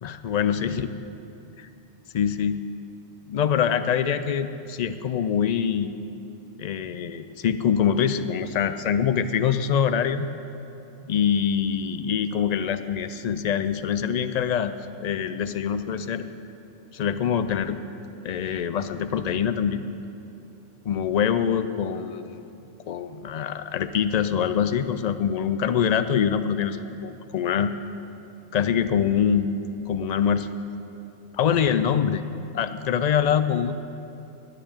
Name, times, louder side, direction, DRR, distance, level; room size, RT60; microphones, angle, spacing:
voice 1, 0.0-0.9 1.6-1.7 2.1-2.6 3.3-5.9 6.6-10.3 11.1-14.7 15.0-16.2 16.9-17.8 18.2-19.9 20.8-22.5 22.9-27.7 28.5-29.5 29.9-30.5 31.4-32.2 32.5-33.7, left 8 dB, 70° left, 11 dB, 0.4 m, -24 dB
9.8 x 9.0 x 8.7 m, 2.8 s
omnidirectional pair, 1.2 m